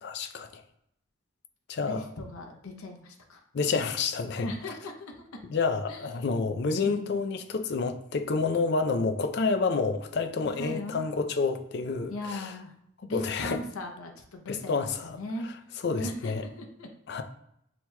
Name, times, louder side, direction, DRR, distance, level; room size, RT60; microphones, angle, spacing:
voice 1, 0.0-0.6 1.7-2.1 3.5-4.5 5.4-12.5 13.1-13.6 14.5-15.2 15.4-15.6 15.8-16.4 17.1-17.2, left 4 dB, 50° left, 0.4 m, -29 dB
voice 2, 1.8-3.4 4.4-5.2 5.9-6.0 6.8-7.1 10.6-11.0 12.1-12.7 13.0-15.5 15.9-16.3 16.6-16.9, left 1 dB, 85° left, 0.7 m, -38 dB
6.2 x 2.9 x 2.2 m
head